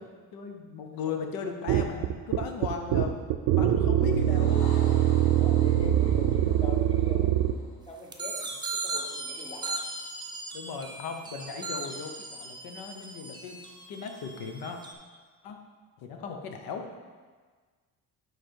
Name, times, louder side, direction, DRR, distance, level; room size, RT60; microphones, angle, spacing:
voice 1, 0.3-3.1 3.5-4.7 10.5-14.8 15.4-15.6 16.0-17.0, left 5 dB, 75° left, 4 dB, 0.9 m, -37 dB
sound 1, 1.7-7.6, right 11 dB, 85° right, 0.5 m, -23 dB
sound 2, 4.0-8.6, left 2 dB, 50° left, 2.2 m, -46 dB
voice 2, 5.3-7.3 7.9-8.4 8.8-9.8 16.1-16.4, left 2 dB, 15° left, -1 dB, 1.1 m, -42 dB
sound 3, 8.1-14.9, right 3 dB, 10° right, 0.6 m, -38 dB
9.9 x 3.3 x 4.5 m, 1.5 s
cardioid pair, 145°, 36 cm